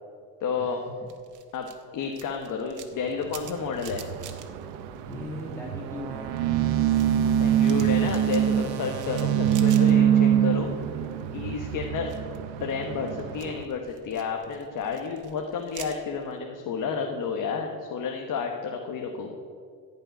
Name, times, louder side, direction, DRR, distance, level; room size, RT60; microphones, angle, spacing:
voice 1, 0.4-0.8 1.5-1.7 1.9-4.0 7.4-10.8 11.3-12.1 12.6-19.3, left 5 dB, 55° left, 2 dB, 1.4 m, -31 dB
sound 1, 1.1-5.7 6.0-10.5 10.7-11.4 11.8-16.3, right 8 dB, 50° right, 1.5 m, -47 dB
sound 2, 3.2-13.6, right 10 dB, 90° right, 0.9 m, -25 dB
sound 3, 4.5-11.6, right 10 dB, 70° right, 1.1 m, -41 dB
voice 2, 5.1-7.6, left 1 dB, 5° left, -3 dB, 1.6 m, -41 dB
15.5 x 5.5 x 9.3 m, 2.2 s
cardioid pair, 100°, 39 cm